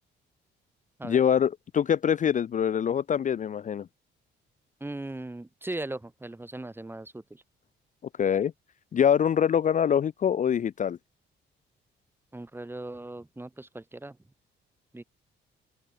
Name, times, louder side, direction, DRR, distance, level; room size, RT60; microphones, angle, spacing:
voice 1, 1.0-3.9 8.2-8.5 8.9-11.0, left 8 dB, 40° left, 0.5 m, -24 dB
voice 2, 4.8-7.4 12.3-14.2 14.9-15.0, right 2 dB, 10° right, 1.3 m, -38 dB
open air
cardioid pair, 90°, 20 cm